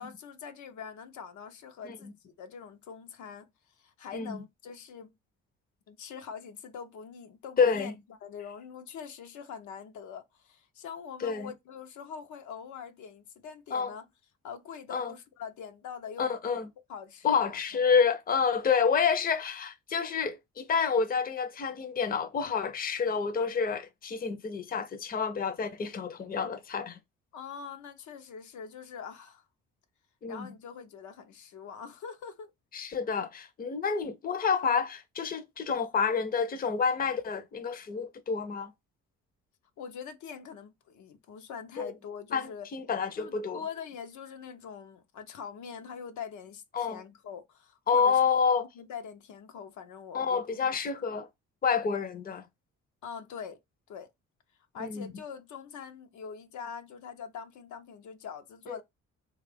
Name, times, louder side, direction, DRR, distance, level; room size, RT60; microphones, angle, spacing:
voice 1, 0.0-3.5 3.8-5.1 5.9-14.1 14.4-16.3 16.9-17.6 27.3-29.4 30.3-32.5 39.8-42.7 43.1-48.2 48.8-50.7 51.1-51.2 53.0-53.6 53.9-54.1 54.7-58.8, left 7 dB, 75° left, 0.7 m, -43 dB
voice 2, 4.1-4.4 7.6-7.9 11.2-11.5 13.7-13.9 14.9-15.1 16.2-16.7 17.2-27.0 30.2-30.5 32.7-38.7 41.8-41.9 42.3-43.6 46.7-47.0 47.9-48.7 50.1-51.3 51.6-52.4 54.8-55.1 58.7-58.8, left 6 dB, 30° left, 0.6 m, -28 dB
3.3 x 2.4 x 3.4 m
cardioid pair, 90°, 30 cm